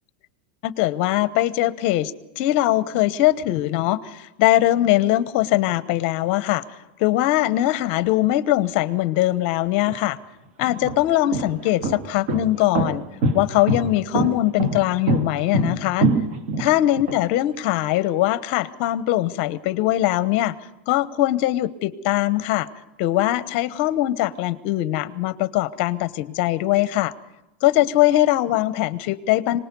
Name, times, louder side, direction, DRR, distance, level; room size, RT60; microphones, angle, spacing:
voice 1, 0.6-6.6 7.0-10.2 10.6-13.1 13.3-16.1 16.6-20.5 20.9-22.7 23.0-27.1 27.6-29.6, left 15 dB, 50° left, 15 dB, 0.9 m, -21 dB
sound 1, 9.9-10.0 10.6-17.2, right 2 dB, 55° right, 2.4 m, -23 dB
25.0 x 19.5 x 5.4 m, 1.0 s
supercardioid pair, 145°, 6 cm